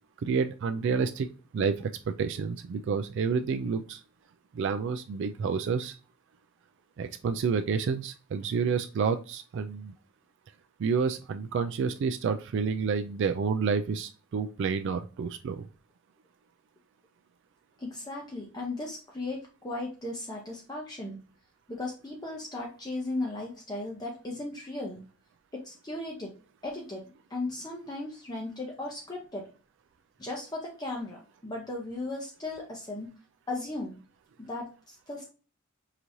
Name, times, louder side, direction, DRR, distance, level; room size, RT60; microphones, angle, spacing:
voice 1, 0.2-1.3 1.5-4.0 4.5-5.9 7.0-9.9 10.8-15.7, right 5 dB, 65° right, 8 dB, 0.3 m, -29 dB
voice 2, 17.8-21.2 21.7-25.0 25.5-26.4 26.6-29.5 30.2-33.1 33.5-34.0 34.4-35.3, left 2 dB, 20° left, -1 dB, 0.7 m, -36 dB
4.9 x 3.0 x 2.6 m, 0.34 s
head